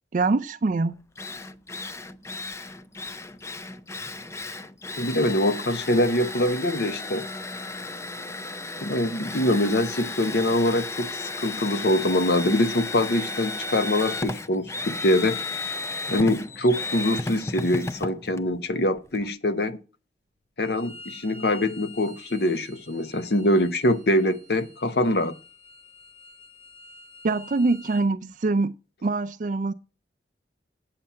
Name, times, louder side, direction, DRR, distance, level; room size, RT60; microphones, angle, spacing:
voice 1, 0.1-1.0 27.2-28.7 29.0-29.7, right 3 dB, 45° right, 0.4 m, -24 dB
Drill, 0.7-0.8 1.2-19.3, left 3 dB, 15° left, 0.4 m, -34 dB
voice 2, 5.0-7.3 8.8-15.4 16.1-19.8 20.6-25.3, left 1 dB, 65° left, 0.9 m, -24 dB
Bowed string instrument, 20.6-28.1, left 2 dB, 40° left, 3.9 m, -48 dB
8.7 x 7.4 x 5.6 m
head